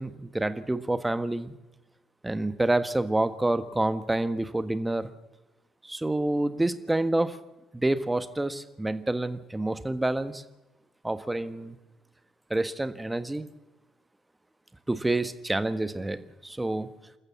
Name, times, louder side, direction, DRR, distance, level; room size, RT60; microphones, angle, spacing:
voice 1, 0.0-1.5 2.2-5.1 5.8-7.4 7.7-10.4 11.0-11.8 12.5-13.4 14.9-16.9, right 2 dB, 15° right, 12 dB, 1.5 m, -28 dB
27.5 x 14.0 x 7.3 m, 1.1 s
figure-of-eight pair, 50°, 0 cm